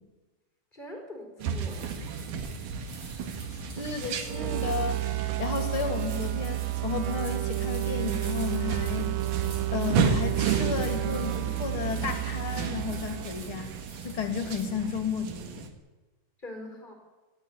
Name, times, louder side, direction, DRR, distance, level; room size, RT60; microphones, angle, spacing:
voice 1, 0.7-2.1 16.4-16.9, left 1 dB, 15° left, 3 dB, 4.3 m, -43 dB
sound 1, 1.4-15.7, right 5 dB, 85° right, 3.2 m, -34 dB
sound 2, 1.7-14.7, right 3 dB, 50° right, 4.6 m, -48 dB
voice 2, 3.8-9.2 9.7-13.7 14.0-15.7, left 6 dB, 45° left, 7 dB, 3.0 m, -33 dB
sound 3, 4.2-13.7, right 17 dB, 70° right, 1.7 m, -31 dB
18.5 x 15.5 x 10.0 m, 1.2 s
omnidirectional pair, 3.5 m